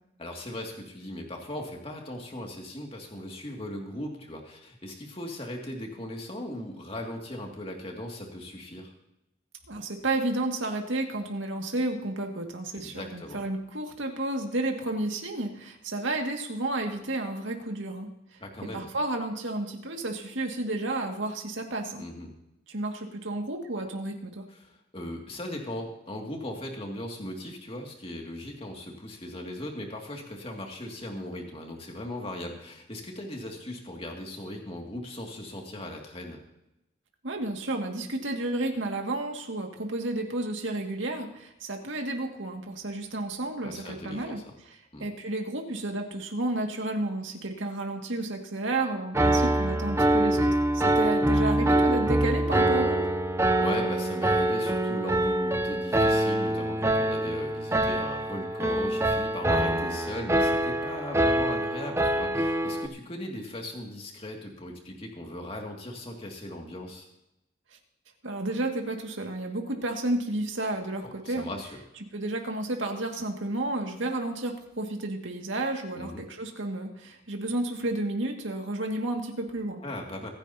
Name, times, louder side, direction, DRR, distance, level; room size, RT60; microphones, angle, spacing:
voice 1, 0.2-8.9 12.7-13.4 18.4-18.9 22.0-22.3 24.5-36.4 43.6-44.5 44.9-45.1 49.1-49.4 53.4-67.1 71.0-71.7 76.0-76.2 79.8-80.3, left 1 dB, 30° left, 1 dB, 2.3 m, -38 dB
voice 2, 9.7-22.0 22.7-24.5 37.2-44.4 45.0-53.0 68.2-71.5 72.1-79.8, right 2 dB, 75° right, 2 dB, 2.1 m, -31 dB
Piano, 49.1-62.9, right 1 dB, 15° right, 0.6 m, -25 dB
25.0 x 10.0 x 2.8 m, 0.86 s
head